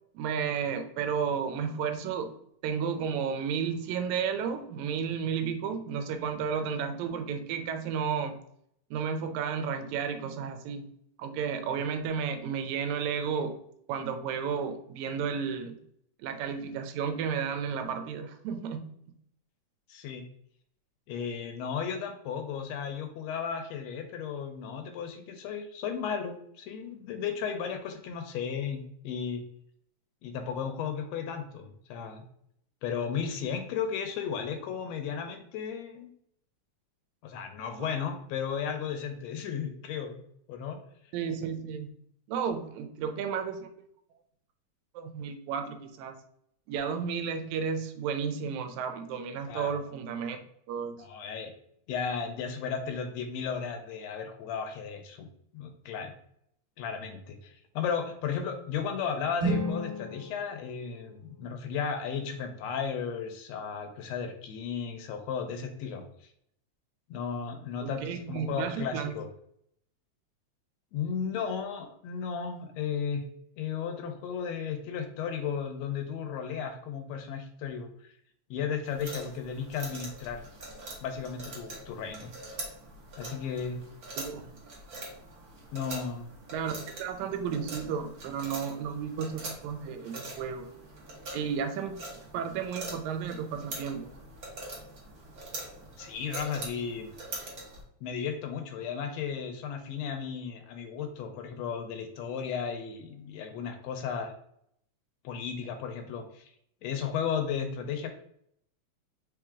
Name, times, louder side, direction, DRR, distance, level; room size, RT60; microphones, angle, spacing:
voice 1, 0.1-2.3 2.6-8.4 8.9-10.9 11.2-13.5 13.9-15.8 16.2-18.9 41.1-41.9 42.3-43.7 45.0-46.1 46.7-50.4 50.7-51.0 67.8-69.1 84.2-84.5 86.5-90.7 91.3-92.0 92.3-94.1, right 6 dB, 80° right, 7 dB, 2.0 m, -32 dB
voice 2, 19.9-20.2 21.1-29.4 30.2-32.2 32.8-36.1 37.2-40.2 40.5-40.8 49.5-49.7 51.0-51.5 51.9-55.3 55.5-56.1 56.8-66.0 67.1-69.3 70.9-73.3 73.6-77.9 78.5-80.4 81.0-82.6 83.2-83.8 85.7-86.3 96.0-97.1 98.0-104.3 105.2-106.5 106.8-108.1, left 7 dB, 75° left, 6 dB, 1.7 m, -34 dB
sound 1, 59.4-61.5, right 1 dB, 30° right, 0.4 m, -34 dB
sound 2, 78.9-97.8, right 2 dB, 60° right, 1.0 m, -43 dB
4.8 x 3.1 x 3.5 m, 0.71 s
omnidirectional pair, 3.4 m